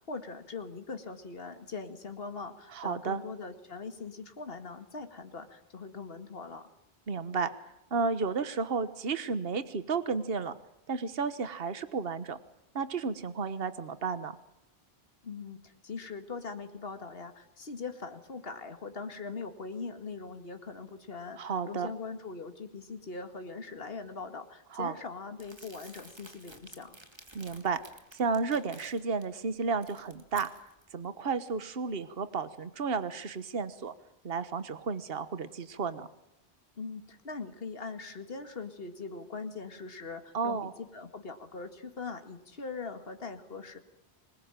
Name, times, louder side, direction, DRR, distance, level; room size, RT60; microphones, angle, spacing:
voice 1, 0.1-6.7 15.2-27.0 36.8-43.8, left 4 dB, 60° left, 7 dB, 2.3 m, -41 dB
voice 2, 2.7-3.2 7.1-7.5 7.9-10.5 10.9-12.4 12.7-14.4 21.4-21.9 24.7-25.0 27.3-27.8 28.1-30.5 30.9-33.9 34.2-36.1 40.3-40.7, right 5 dB, 65° right, 12 dB, 1.5 m, -32 dB
Crumpling crinkling, 25.4-29.2 29.6-30.9, right 1 dB, 25° right, 2.7 m, -53 dB
26.5 x 21.0 x 9.1 m, 0.88 s
omnidirectional pair, 1.1 m